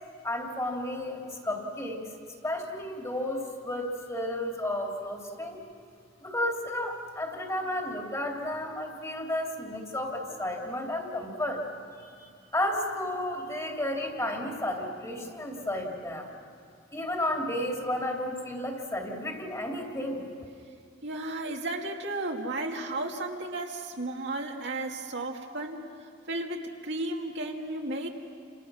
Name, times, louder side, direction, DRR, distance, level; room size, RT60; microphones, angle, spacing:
voice 1, 0.2-2.0 2.4-5.6 6.2-11.6 12.2-12.3 12.5-16.3 16.9-20.2, left 1 dB, 15° left, 1 dB, 2.9 m, -32 dB
voice 2, 21.0-25.8 26.3-28.1, right 2 dB, 65° right, 1 dB, 2.2 m, -34 dB
29.5 x 27.0 x 6.3 m, 2.4 s
head